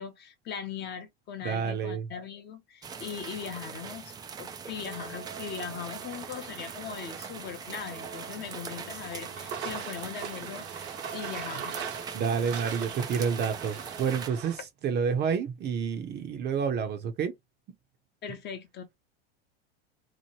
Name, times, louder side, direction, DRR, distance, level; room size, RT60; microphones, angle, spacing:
voice 1, 0.0-11.9 18.2-18.8, left 7 dB, 30° left, 0.8 m, -40 dB
voice 2, 1.4-2.1 12.1-17.3, right 6 dB, 30° right, 0.7 m, -29 dB
sound 1, 2.8-14.3, right 6 dB, 15° right, 0.3 m, -42 dB
sound 2, 4.8-14.6, right 7 dB, 85° right, 1.1 m, -41 dB
2.9 x 2.1 x 3.0 m
hypercardioid pair, 115°, 32 cm